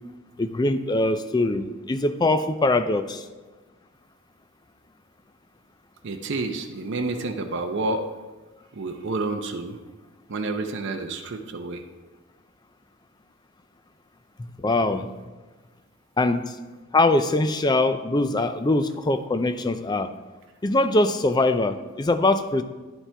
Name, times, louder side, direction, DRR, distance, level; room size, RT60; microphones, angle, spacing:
voice 1, 0.4-3.2 14.6-15.1 16.2-16.6 16.9-20.1 20.6-22.6, left 2 dB, 20° left, 10 dB, 0.4 m, -22 dB
voice 2, 6.0-8.1 8.7-9.8 10.3-11.8, right 3 dB, 55° right, 4 dB, 0.6 m, -29 dB
10.0 x 7.3 x 3.4 m, 1.3 s
head